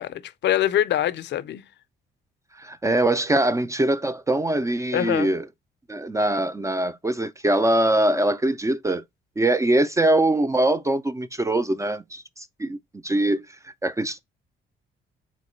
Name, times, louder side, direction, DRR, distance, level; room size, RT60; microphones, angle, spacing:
voice 1, 0.0-1.6 4.9-5.3, left 11 dB, 65° left, 0.5 m, -24 dB
voice 2, 2.6-5.5 5.9-9.0 9.4-12.8 13.0-14.2, right 1 dB, 15° right, 0.3 m, -23 dB
3.5 x 2.9 x 4.3 m
cardioid pair, 90°, 20 cm